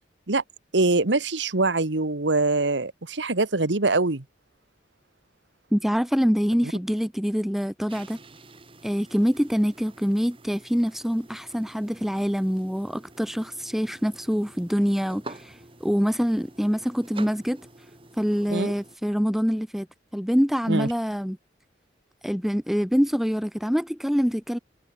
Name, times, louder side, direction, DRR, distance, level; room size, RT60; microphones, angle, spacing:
voice 1, 0.7-4.2 6.6-6.7 18.5-18.7 20.7-20.9, right 3 dB, 80° right, 1.5 m, -23 dB
voice 2, 5.7-8.2 8.8-17.6 18.2-19.9 20.1-21.4 22.2-24.6, equal, ahead, 0.7 m, -25 dB
sound 1, 7.9-19.0, right 2 dB, 30° right, 2.8 m, -48 dB
head